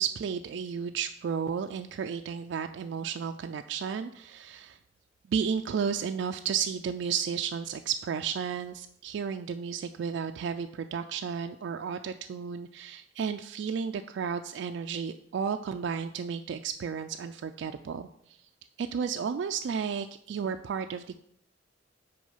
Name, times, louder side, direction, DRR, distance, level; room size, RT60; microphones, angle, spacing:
voice 1, 0.0-4.8 5.3-18.4 18.8-21.2, right 7 dB, 65° right, 6 dB, 0.3 m, -33 dB
6.1 x 4.4 x 5.5 m, 0.71 s
head